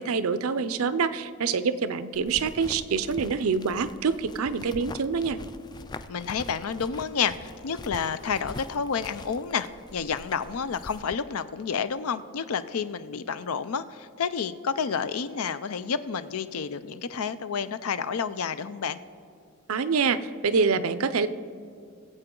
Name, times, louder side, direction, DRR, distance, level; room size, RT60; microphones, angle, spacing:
voice 1, 0.0-5.4 19.7-21.3, right 5 dB, 70° right, 13 dB, 0.5 m, -26 dB
sound 1, 2.1-11.1, left 3 dB, 20° left, 0.3 m, -43 dB
voice 2, 6.1-19.0, left 6 dB, 75° left, 13 dB, 0.5 m, -30 dB
21.5 x 7.8 x 3.8 m, 2.4 s
head